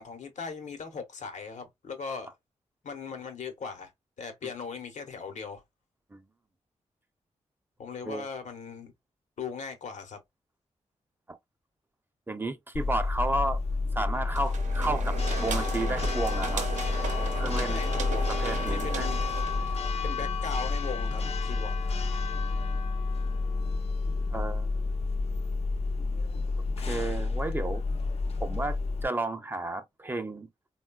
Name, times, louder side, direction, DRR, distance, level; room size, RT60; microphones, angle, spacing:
voice 1, 0.0-2.3 2.8-3.9 4.2-5.6 7.8-8.9 9.4-10.2 17.7-18.4 18.6-19.2 20.0-21.8, left 5 dB, 80° left, 0.8 m, -39 dB
voice 2, 12.3-13.6 13.9-16.7 17.4-17.8 18.3-19.1 19.5-19.7 24.3-24.9 26.8-27.8 28.4-30.5, right 2 dB, 15° right, 0.4 m, -32 dB
Church bell, 12.7-29.1, left 3 dB, 55° left, 0.5 m, -30 dB
sound 1, 14.3-19.8, right 4 dB, 80° right, 0.7 m, -36 dB
3.7 x 2.2 x 2.2 m
wide cardioid pair, 125°, 12 cm